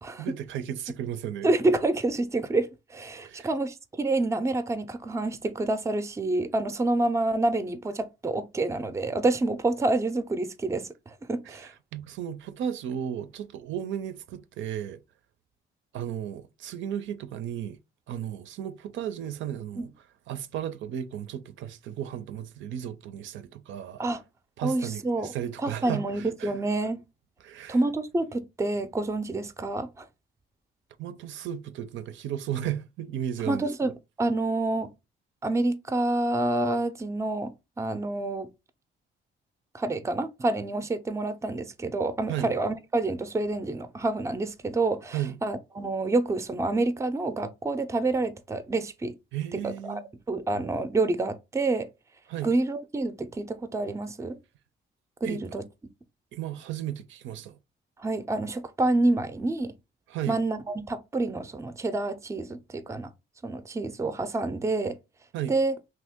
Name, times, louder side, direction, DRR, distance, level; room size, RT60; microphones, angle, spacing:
voice 1, 0.2-1.5 3.2-3.5 11.5-15.0 15.9-17.8 18.1-19.9 20.3-24.0 24.6-26.5 27.4-27.8 31.0-33.7 42.3-42.5 45.1-45.4 49.3-50.1 52.3-52.5 55.2-55.4 56.3-57.6 60.1-60.4 65.3-65.5, right 10 dB, 75° right, 0.4 m, -34 dB
voice 2, 1.4-11.7 19.8-19.9 24.0-24.2 24.6-25.3 25.6-27.0 27.7-30.1 33.5-33.9 34.2-34.9 35.4-37.5 37.8-38.5 39.7-49.1 49.6-50.0 50.3-51.9 52.4-54.4 55.2-55.6 58.0-59.7 60.3-63.1 63.4-65.0 65.5-65.7, right 2 dB, 15° right, 0.4 m, -28 dB
2.9 x 2.6 x 3.5 m
cardioid pair, 90°, 20 cm